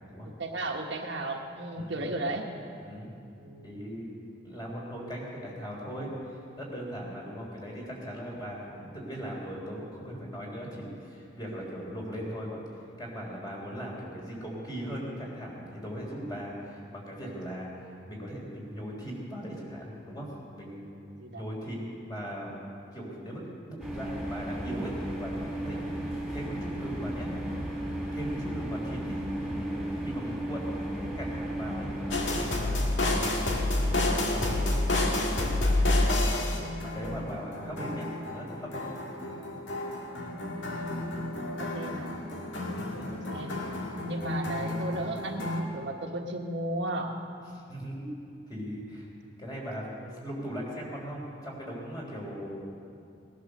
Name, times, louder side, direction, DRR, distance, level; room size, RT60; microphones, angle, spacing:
voice 1, 0.2-2.5 3.4-3.7 21.2-21.4 26.0-26.1 41.3-42.1 42.9-43.6 44.0-47.2 49.9-50.2, right 1 dB, 70° right, 1 dB, 1.4 m, -35 dB
voice 2, 1.8-2.1 2.8-3.1 3.6-4.1 4.4-12.6 13.0-20.9 21.3-21.8 22.0-22.5 22.9-27.3 27.8-27.9 28.1-30.6 30.9-33.3 33.9-34.8 35.3-35.5 36.8-38.9 42.7-43.1 47.5-48.1 48.5-49.1 49.4-52.7, equal, 20° left, -3 dB, 3.6 m, -39 dB
sound 1, 23.8-32.5, right 1 dB, ahead, 3.0 m, -34 dB
sound 2, 32.1-45.6, left 1 dB, 75° left, 1.9 m, -30 dB
19.0 x 11.5 x 6.6 m, 2.5 s
head